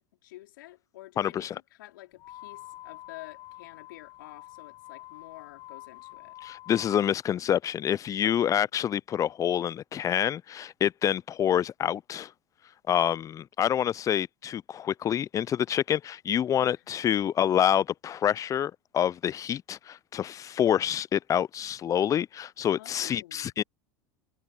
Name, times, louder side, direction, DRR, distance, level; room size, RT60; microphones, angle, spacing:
voice 1, 0.0-6.4 8.2-8.7 16.6-17.2 22.7-23.5, left 17 dB, 70° left, 4.1 m, -49 dB
voice 2, 1.2-1.6 6.4-12.3 12.9-23.6, left 10 dB, 30° left, 0.4 m, -27 dB
sound 1, 2.2-7.1, left 16 dB, 50° left, 1.4 m, -46 dB
hypercardioid pair, 85°, 11 cm